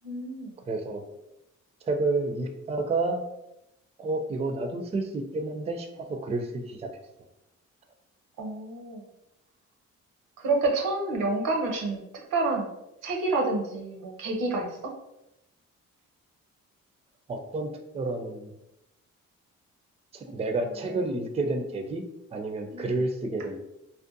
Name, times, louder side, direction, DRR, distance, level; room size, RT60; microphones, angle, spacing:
voice 1, 0.0-0.5 8.4-9.0 10.4-12.0 12.3-12.7 13.0-14.9 22.7-23.0, right 3 dB, 85° right, 1 dB, 0.6 m, -28 dB
voice 2, 0.7-1.0 1.8-3.2 4.0-6.9 17.3-18.5 20.1-22.0 22.3-23.6, right 2 dB, 20° right, 5 dB, 0.4 m, -30 dB
2.6 x 2.1 x 2.5 m, 0.86 s
supercardioid pair, 60°, 32 cm